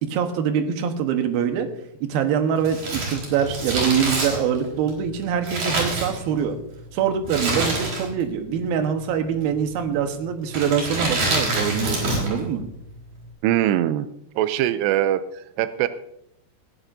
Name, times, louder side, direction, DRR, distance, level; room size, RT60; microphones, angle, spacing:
voice 1, 0.0-1.7 2.0-6.6 6.9-12.6, right 8 dB, 70° right, 6 dB, 2.9 m, -24 dB
Crumpling crinkling, 2.6-6.6 7.3-8.3 8.5-8.6 9.5-9.8 10.5-12.4 12.7-12.8, right 2 dB, 55° right, 5.7 m, -26 dB
voice 2, 13.4-14.1 14.4-15.9, right 12 dB, 90° right, 12 dB, 2.7 m, -22 dB
19.0 x 15.5 x 2.7 m, 0.76 s
omnidirectional pair, 4.7 m